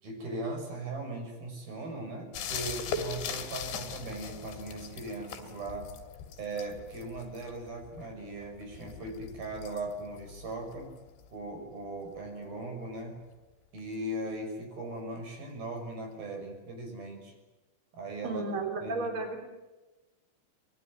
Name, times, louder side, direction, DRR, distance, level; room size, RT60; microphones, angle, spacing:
voice 1, 0.0-5.9 6.4-10.9 11.3-13.2 13.7-17.3 17.9-18.4 18.8-19.1, right 2 dB, 55° right, 4 dB, 7.6 m, -39 dB
sound 1, 2.3-11.7 13.8-13.9, left 6 dB, 75° left, 4.9 m, -41 dB
voice 2, 18.2-19.5, right 3 dB, 35° right, 4 dB, 3.3 m, -33 dB
27.0 x 21.0 x 9.5 m, 1.1 s
omnidirectional pair, 5.2 m